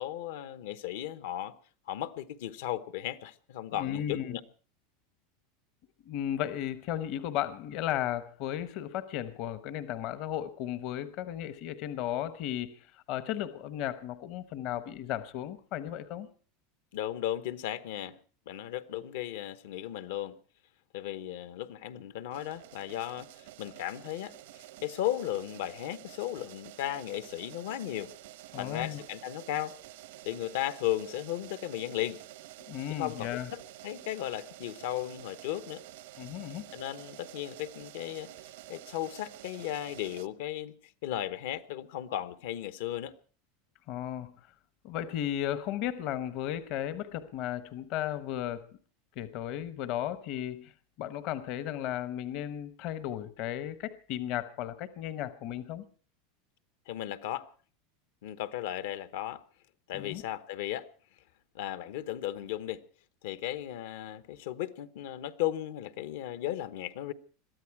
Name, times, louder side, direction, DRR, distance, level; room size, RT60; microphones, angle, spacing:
voice 1, 0.0-1.5 1.9-4.4 16.9-18.2 18.5-20.4 20.9-28.1 28.6-29.7 30.2-32.2 32.9-35.8 36.7-38.3 38.7-40.7 41.0-43.1 56.9-57.5 58.2-59.4 59.9-60.9 61.5-62.8 63.2-67.1, left 12 dB, 70° left, 1.0 m, -35 dB
voice 2, 3.7-4.4 6.1-16.3 28.5-29.0 32.7-33.5 36.2-36.7 43.9-44.3 44.8-48.7 49.2-50.7 51.0-55.9 59.9-60.2, left 11 dB, 45° left, 0.9 m, -35 dB
sound 1, 22.3-40.3, right 15 dB, 75° right, 0.9 m, -49 dB
22.0 x 13.5 x 4.7 m
supercardioid pair, 160°, 0 cm